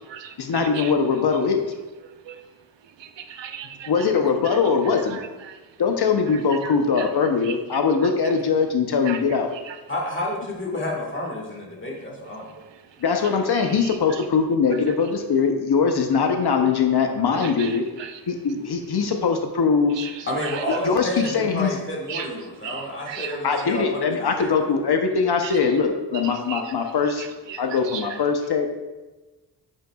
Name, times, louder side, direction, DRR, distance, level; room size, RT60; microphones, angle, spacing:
voice 1, 0.4-1.6 3.9-5.2 5.8-9.5 13.0-20.2 20.8-21.7 23.4-27.2 27.6-28.7, left 5 dB, 65° left, 0.8 m, -22 dB
voice 2, 3.0-3.9 5.1-5.2 6.6-6.7 9.1-9.2 9.7-9.8 13.6-13.7 17.3-17.7 18.0-18.1 20.0-20.1 20.4-20.6 22.1-22.3 22.6-23.4 25.4-25.5 26.2-26.7 27.5-27.6 27.9-28.0, right 9 dB, 80° right, 0.6 m, -35 dB
voice 3, 9.9-12.5 20.3-24.7, left 1 dB, 25° left, 1.6 m, -30 dB
7.8 x 7.5 x 2.3 m
wide cardioid pair, 130°, 43 cm